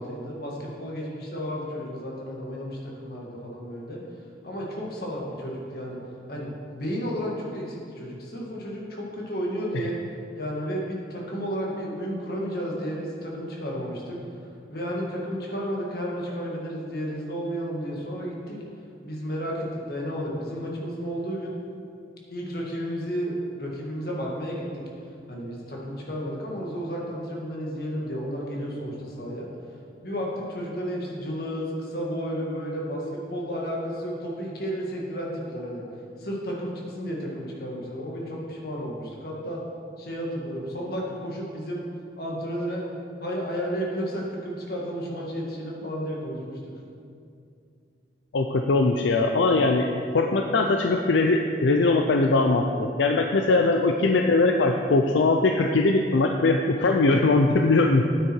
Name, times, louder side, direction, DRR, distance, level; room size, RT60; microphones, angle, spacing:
voice 1, 0.0-4.0 4.4-6.0 6.3-10.0 10.3-14.2 14.7-18.6 19.0-21.5 22.3-24.8 25.3-29.5 30.0-35.8 36.2-39.6 40.0-41.8 42.2-42.8 43.2-46.6 53.5-53.6, equal, 55° left, -3 dB, 1.9 m, -32 dB
voice 2, 48.3-49.9 50.1-58.1, left 3 dB, 80° left, 4 dB, 0.5 m, -21 dB
9.4 x 8.5 x 4.6 m, 2.5 s
head